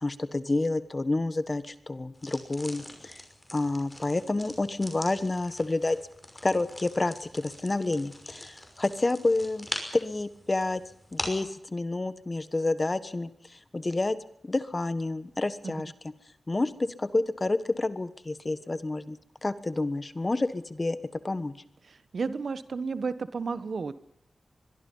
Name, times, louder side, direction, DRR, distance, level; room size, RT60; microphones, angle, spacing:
voice 1, 0.0-3.2 3.5-6.0 6.4-9.7 9.9-10.8 11.1-14.2 14.4-15.9 16.5-21.0 21.2-21.5, left 2 dB, 30° left, 13 dB, 1.3 m, -29 dB
sound 1, 2.1-11.5, left 1 dB, 15° left, 5.8 m, -42 dB
voice 2, 22.1-24.0, right 4 dB, 65° right, 13 dB, 1.3 m, -32 dB
24.5 x 22.0 x 5.6 m, 0.74 s
wide cardioid pair, 115°, 0 cm